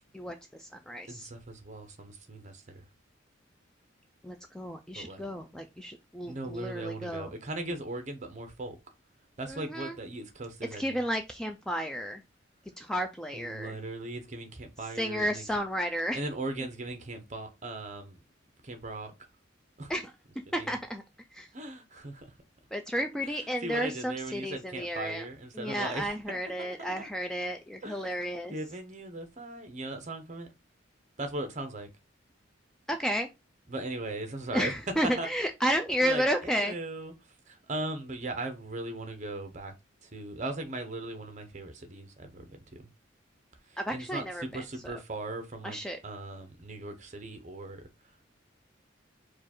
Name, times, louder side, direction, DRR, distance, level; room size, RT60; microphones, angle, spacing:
voice 1, 0.1-1.3 4.2-7.3 9.5-10.0 10.7-12.2 12.8-13.8 15.0-16.2 19.9-20.1 20.5-21.0 21.3-21.5 22.7-25.2 25.5-28.5 32.9-33.3 34.5-36.7 43.8-44.6 45.6-46.0, equal, 5° left, 0.3 m, -32 dB
voice 2, 1.1-2.9 4.9-5.2 6.2-8.8 9.4-11.0 13.3-15.4 16.1-18.2 18.6-19.1 19.8-19.9 20.5-20.7 21.5-22.3 23.6-27.1 27.8-28.1 28.5-30.5 31.2-31.9 33.7-34.7 35.2-35.3 36.0-37.1 37.5-39.7 40.0-42.8 43.7-47.8, right 2 dB, 35° right, 0.9 m, -38 dB
4.7 x 2.4 x 4.3 m
head